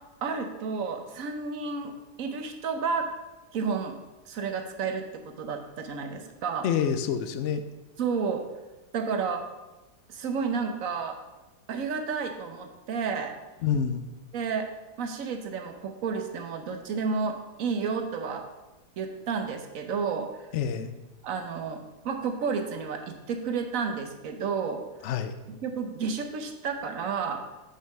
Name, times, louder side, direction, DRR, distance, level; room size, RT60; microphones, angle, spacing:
voice 1, 0.2-1.9 2.2-3.1 3.5-3.9 4.3-6.6 8.0-8.4 8.9-9.4 10.1-11.2 11.7-13.4 14.3-14.7 15.0-18.4 19.0-20.3 21.2-24.8 25.6-27.4, right 5 dB, 60° right, 6 dB, 1.1 m, -31 dB
voice 2, 6.6-7.6 13.6-14.0 20.5-20.9 25.0-25.3, left 8 dB, 90° left, 9 dB, 0.6 m, -27 dB
6.4 x 5.5 x 5.4 m, 1.1 s
omnidirectional pair, 1.8 m